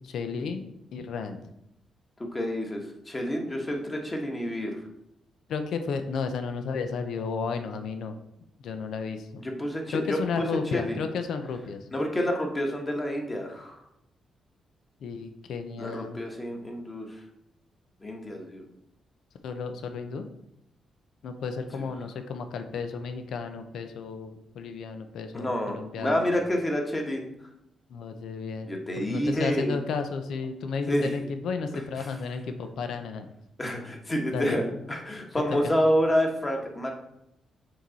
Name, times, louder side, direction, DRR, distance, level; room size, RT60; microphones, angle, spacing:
voice 1, 0.0-1.4 5.5-8.2 8.6-9.4 9.9-11.8 15.0-16.2 19.4-20.3 21.2-26.3 27.9-28.7 29.0-33.3 34.3-34.6 35.6-35.7, left 5 dB, 80° left, 7 dB, 0.7 m, -33 dB
voice 2, 2.2-4.9 9.4-11.0 11.9-13.8 15.8-17.2 18.0-18.6 21.7-21.9 25.3-27.3 28.6-29.8 30.9-31.1 32.0-32.1 33.6-36.9, equal, 25° left, 2 dB, 1.4 m, -28 dB
6.4 x 4.7 x 4.1 m, 0.82 s
cardioid pair, 100°, 0 cm